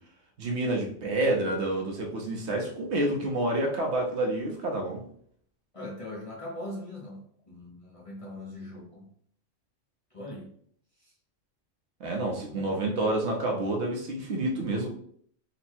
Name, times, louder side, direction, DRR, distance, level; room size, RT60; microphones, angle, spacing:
voice 1, 0.4-5.1 12.0-14.9, right 2 dB, 65° right, 1 dB, 1.1 m, -28 dB
voice 2, 5.7-9.1 10.1-10.5 11.0-11.1 12.5-13.1, left 1 dB, 30° left, -4 dB, 0.8 m, -41 dB
4.0 x 2.2 x 4.4 m, 0.62 s
omnidirectional pair, 1.3 m